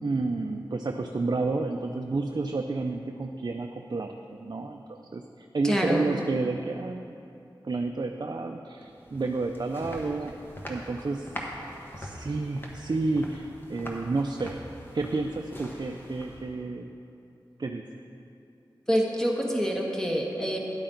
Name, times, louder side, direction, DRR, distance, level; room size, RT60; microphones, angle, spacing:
voice 1, 0.0-7.1 7.6-10.3 10.7-11.3 11.9-14.6 14.9-16.9 17.6-17.9, right 3 dB, 50° right, 4 dB, 0.4 m, -30 dB
voice 2, 5.6-6.1 18.9-20.6, equal, 5° left, -1 dB, 1.5 m, -26 dB
sound 1, 8.8-16.6, equal, 25° left, 1.3 m, -42 dB
10.5 x 8.5 x 3.9 m, 2.7 s
cardioid pair, 40°, 9 cm